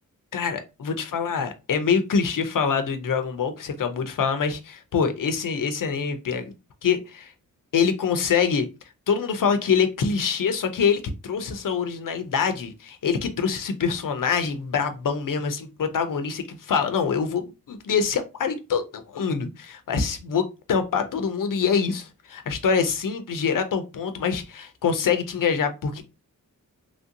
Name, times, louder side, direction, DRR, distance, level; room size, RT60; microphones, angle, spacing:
voice 1, 0.3-6.5 6.8-7.3 7.7-8.7 9.1-20.4 20.7-26.0, left 6 dB, 70° left, 0.6 m, -25 dB
3.0 x 2.6 x 2.8 m
wide cardioid pair, 110°, 34 cm